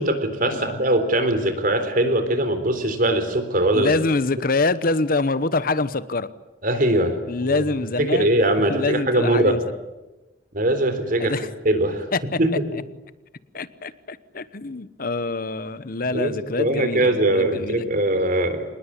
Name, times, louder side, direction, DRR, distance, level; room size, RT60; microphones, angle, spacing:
voice 1, 0.0-3.9 6.6-7.1 7.4-7.6 8.0-9.6 10.5-11.4 11.6-12.1 12.4-12.5 16.1-18.6, right 1 dB, 55° right, 9 dB, 3.9 m, -21 dB
voice 2, 3.7-6.3 7.3-8.3 8.7-9.6 11.2-11.5 12.1-12.2 13.5-17.9, left 3 dB, 55° left, 15 dB, 1.0 m, -25 dB
26.0 x 20.0 x 9.9 m, 1.1 s
head